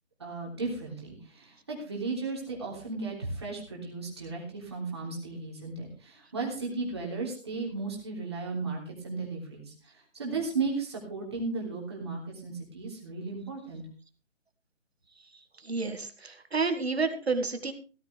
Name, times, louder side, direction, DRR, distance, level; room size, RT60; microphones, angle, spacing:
voice 1, 0.2-13.8, right 3 dB, 20° right, -2 dB, 3.3 m, -35 dB
voice 2, 15.6-17.7, right 4 dB, 55° right, 7 dB, 2.1 m, -30 dB
17.0 x 13.5 x 3.4 m, 0.35 s
hypercardioid pair, 180°, 37 cm